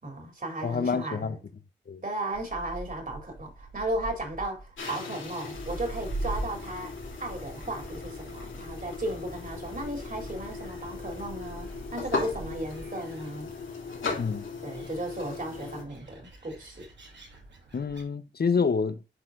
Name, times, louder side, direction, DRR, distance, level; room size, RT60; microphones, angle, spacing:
voice 1, 0.0-1.4 2.0-6.9 7.2-13.5 14.6-16.9, right 1 dB, 45° right, 3.5 m, -35 dB
voice 2, 0.6-1.4 1.9-2.0 14.2-14.4 17.7-19.0, left 5 dB, 55° left, 0.8 m, -27 dB
Gull seagull, 2.3-18.0, right 2 dB, 70° right, 2.9 m, -43 dB
sound 1, 4.8-15.8, left 4 dB, 90° left, 2.8 m, -38 dB
sound 2, 6.4-12.9, equal, 5° right, 2.1 m, -46 dB
11.0 x 4.3 x 2.6 m
cardioid pair, 45°, 20 cm